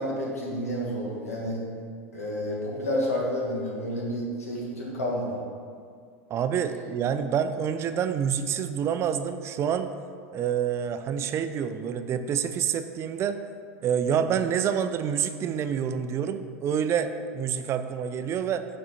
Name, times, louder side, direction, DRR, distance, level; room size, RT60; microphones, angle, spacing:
voice 1, 0.0-1.6 2.1-5.4, equal, 90° left, -3 dB, 1.4 m, -30 dB
voice 2, 6.3-9.9 10.3-13.4 13.8-18.6, right 8 dB, 35° right, 10 dB, 0.4 m, -27 dB
6.1 x 4.4 x 4.1 m, 2.2 s
hypercardioid pair, 85°, 8 cm